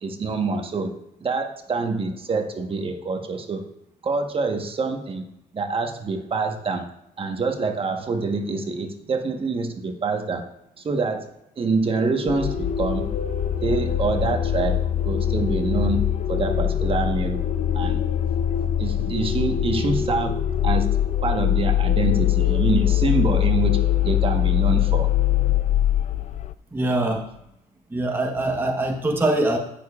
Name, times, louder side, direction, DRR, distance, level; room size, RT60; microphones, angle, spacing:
voice 1, 0.0-0.9 1.2-3.6 4.0-6.9 7.2-10.4 10.8-11.3 11.6-13.1 13.6-16.0 16.3-17.4 17.7-18.0 18.8-20.4 20.6-20.9 21.2-25.1, right 4 dB, 35° right, 4 dB, 1.2 m, -26 dB
sound 1, 11.9-25.6, left 3 dB, 65° left, 1.6 m, -33 dB
sound 2, 12.3-26.5, left 13 dB, 45° left, 0.4 m, -23 dB
voice 2, 26.7-27.2 27.9-29.6, right 2 dB, 10° right, 2 dB, 1.0 m, -23 dB
17.0 x 6.8 x 2.4 m, 0.81 s
cardioid pair, 110°, 17 cm